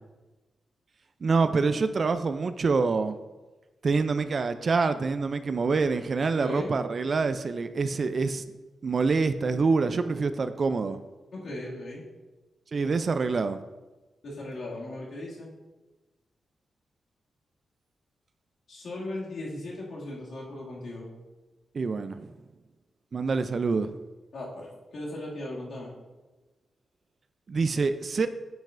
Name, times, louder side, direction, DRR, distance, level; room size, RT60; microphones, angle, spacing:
voice 1, 1.2-3.2 3.8-8.4 8.8-11.0 12.7-13.6 21.7-22.3 23.1-23.9 27.5-28.3, right 4 dB, 45° right, 11 dB, 0.3 m, -26 dB
voice 2, 6.3-6.7 11.3-12.0 14.2-15.5 18.7-21.1 24.3-25.9, left 1 dB, 70° left, -5 dB, 2.1 m, -37 dB
8.9 x 5.3 x 2.5 m, 1.2 s
wide cardioid pair, 125°, 0 cm